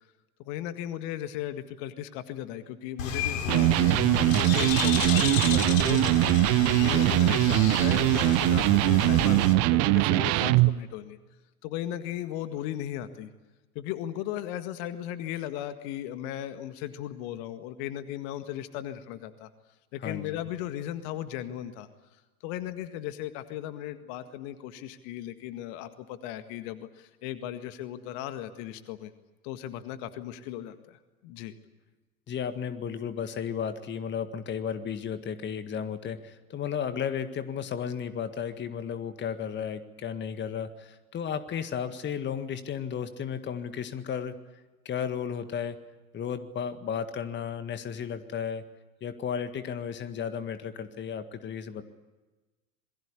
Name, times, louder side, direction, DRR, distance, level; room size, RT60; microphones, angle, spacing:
voice 1, 0.4-11.2 11.6-13.3 13.8-19.5 19.9-21.9 22.4-29.1 29.4-31.5, left 12 dB, 45° left, 10 dB, 1.9 m, -37 dB
Bird, 3.0-9.5, left 6 dB, 60° left, 3.9 m, -31 dB
Electric guitar, 3.5-10.8, right 19 dB, 35° right, 0.8 m, -22 dB
voice 2, 20.0-20.4 32.3-44.3 44.9-45.8 46.1-48.6 49.0-51.8, left 7 dB, 25° left, 10 dB, 1.8 m, -34 dB
27.5 x 22.0 x 8.4 m, 1.2 s
figure-of-eight pair, 85°, 44 cm